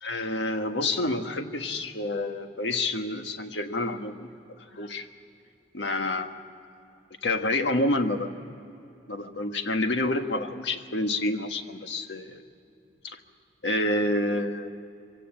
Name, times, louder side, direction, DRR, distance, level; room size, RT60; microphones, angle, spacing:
voice 1, 0.0-5.1 5.7-6.3 7.2-8.3 9.1-12.4 13.0-13.2 13.6-14.7, left 2 dB, 90° left, 6 dB, 1.5 m, -28 dB
24.0 x 17.0 x 8.9 m, 2.7 s
head